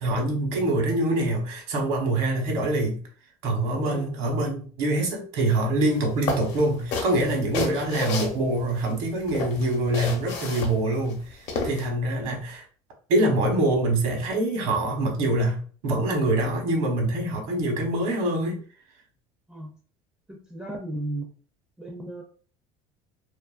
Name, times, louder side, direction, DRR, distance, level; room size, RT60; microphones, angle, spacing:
voice 1, 0.0-3.0 3.4-12.7 13.1-18.6, right 1 dB, 70° right, 2 dB, 1.0 m, -25 dB
voice 2, 3.8-4.2 19.5-19.8 20.3-21.3 21.8-22.2, right 1 dB, 5° right, 0 dB, 0.4 m, -35 dB
sound 1, 5.9-6.0 6.3-8.9 9.3-11.9, left 3 dB, 60° left, 0.7 m, -31 dB
2.5 x 2.5 x 2.3 m, 0.41 s
cardioid pair, 155°, 13 cm